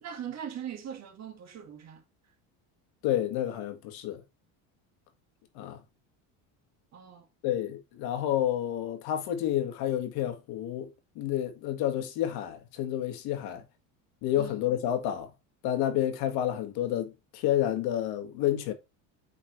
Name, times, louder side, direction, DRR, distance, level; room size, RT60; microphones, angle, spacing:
voice 1, 0.0-2.0 6.9-7.3 13.5-13.6 14.4-14.6, right 9 dB, 45° right, 2.1 m, -41 dB
voice 2, 3.0-4.2 5.6-5.8 7.4-13.6 14.2-15.3 15.6-18.7, left 11 dB, 70° left, 1.8 m, -30 dB
8.5 x 4.3 x 3.2 m
cardioid pair, 130°, 38 cm